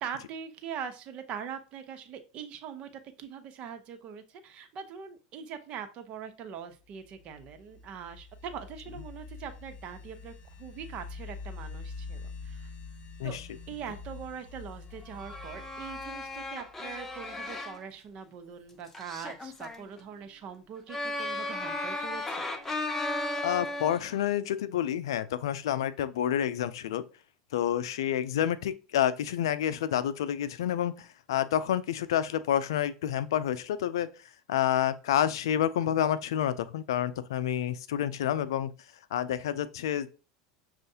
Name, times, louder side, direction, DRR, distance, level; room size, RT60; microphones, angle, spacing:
voice 1, 0.0-12.7 13.2-13.4 13.7-22.4, right 7 dB, 45° right, 0.8 m, -42 dB
sound 1, 7.0-17.6, left 4 dB, 45° left, 1.4 m, -45 dB
sound 2, 15.0-17.8 18.9-19.8 20.9-24.1, left 2 dB, 15° left, 0.7 m, -35 dB
voice 2, 23.4-27.0 27.5-38.7 39.1-40.1, left 10 dB, 85° left, 0.4 m, -29 dB
6.3 x 2.4 x 2.7 m
hypercardioid pair, 105°, 3 cm